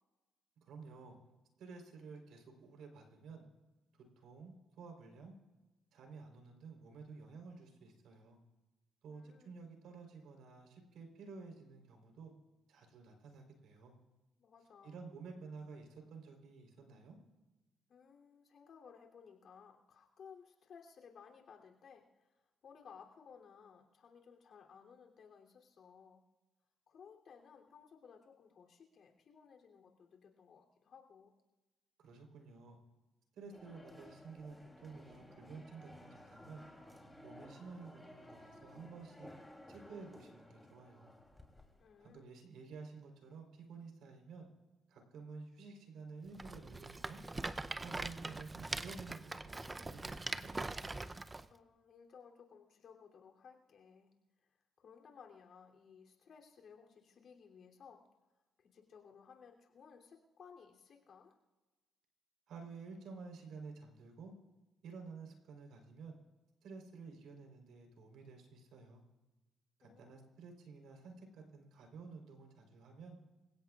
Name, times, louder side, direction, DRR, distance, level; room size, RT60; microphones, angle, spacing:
voice 1, 0.6-1.2 1.6-3.4 4.2-5.3 5.9-8.4 9.0-12.3 12.7-14.0 14.8-17.2 32.0-32.8 33.4-36.6 37.2-39.3 39.7-41.1 42.0-44.5 44.9-47.2 47.8-51.0 62.5-64.3 64.8-66.2 66.6-69.0 69.8-73.2, right 4 dB, 80° right, 3 dB, 3.9 m, -52 dB
voice 2, 9.1-9.6 14.4-15.0 17.9-26.3 26.9-31.3 41.8-42.3 51.5-54.1 54.4-58.1 58.6-61.4 69.8-70.2, left 6 dB, 60° left, 1 dB, 3.1 m, -59 dB
sound 1, 33.5-42.2, left 1 dB, 5° left, 3.1 m, -56 dB
Rattle, 46.3-51.4, right 2 dB, 20° right, 0.6 m, -42 dB
26.5 x 16.5 x 2.5 m, 1.1 s
cardioid pair, 90°, 0 cm